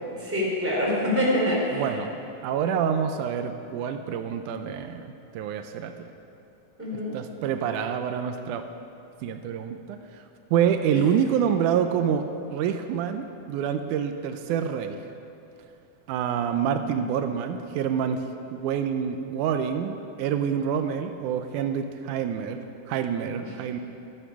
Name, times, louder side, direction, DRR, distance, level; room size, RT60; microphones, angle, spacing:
voice 1, 0.2-1.9 6.8-7.1 10.9-11.0, left 1 dB, 5° right, -5 dB, 3.1 m, -25 dB
voice 2, 1.7-2.1 2.4-6.1 6.9-8.6 9.2-10.2 10.5-12.3 12.5-15.0 16.1-18.2 18.5-22.6 22.9-23.8, right 8 dB, 85° right, 7 dB, 2.1 m, -27 dB
14.5 x 13.0 x 4.8 m, 2.7 s
omnidirectional pair, 3.5 m